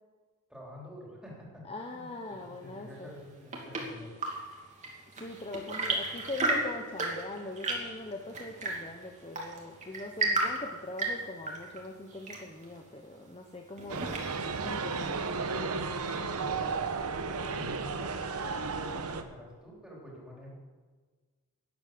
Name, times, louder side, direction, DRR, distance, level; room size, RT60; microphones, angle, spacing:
voice 1, 0.5-4.2 15.7-16.8 17.5-20.5, left 1 dB, 5° right, -3 dB, 3.7 m, -48 dB
voice 2, 1.6-3.1 5.1-14.1 14.6-15.4, left 2 dB, 25° left, 3 dB, 0.9 m, -42 dB
Chirp tweet / Engine / Tap, 3.1-14.6, right 2 dB, 35° right, 2.5 m, -35 dB
sound 1, 13.9-19.2, right 4 dB, 85° right, 1.0 m, -33 dB
12.5 x 9.9 x 7.7 m, 1.4 s
head